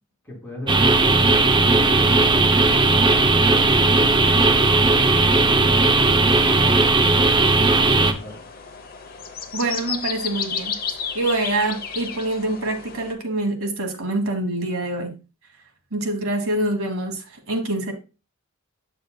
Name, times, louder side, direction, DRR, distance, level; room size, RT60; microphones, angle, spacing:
voice 1, 0.2-3.1 3.7-8.4, left 1 dB, 10° left, 4.2 m, -38 dB
sound 1, 0.7-8.1, right 3 dB, 20° right, 0.5 m, -17 dB
sound 2, 3.4-13.1, left 6 dB, 45° left, 0.8 m, -34 dB
voice 2, 9.5-10.7 11.1-15.2 15.9-17.9, right 2 dB, 75° right, 1.4 m, -25 dB
8.1 x 6.4 x 2.2 m
head